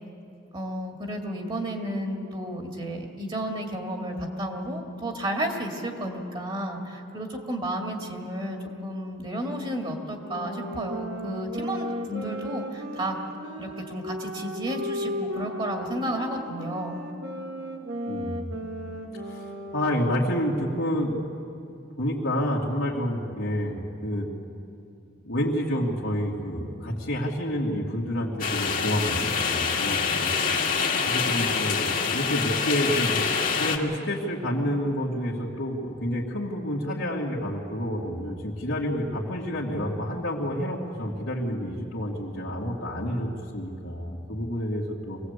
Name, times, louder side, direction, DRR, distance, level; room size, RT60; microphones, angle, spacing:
voice 1, 0.5-13.2 13.6-17.0, right 1 dB, 25° right, 2 dB, 2.1 m, -32 dB
sound 1, 10.2-20.2, equal, 65° right, 2.1 m, -35 dB
voice 2, 18.1-18.5 19.2-21.2 22.0-23.8 24.0-24.3 25.2-30.3 31.0-33.3 33.6-45.2, equal, 85° left, -7 dB, 2.5 m, -29 dB
sound 2, 28.4-33.8, left 5 dB, 45° left, 1.9 m, -26 dB
24.0 x 18.5 x 8.2 m, 2.6 s
head